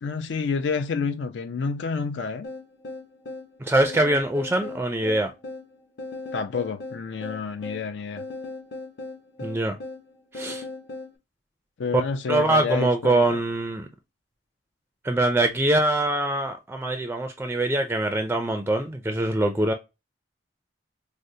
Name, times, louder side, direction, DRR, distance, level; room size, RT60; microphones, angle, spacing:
voice 1, 0.0-2.5 6.3-8.2 11.8-13.2, left 5 dB, 85° left, 0.4 m, -29 dB
sound 1, 2.4-11.1, left 2 dB, 65° left, 0.8 m, -38 dB
voice 2, 3.6-5.3 9.4-9.8 10.3-10.6 12.3-13.9 15.0-19.7, right 1 dB, 10° right, 0.3 m, -23 dB
4.8 x 2.0 x 2.7 m
head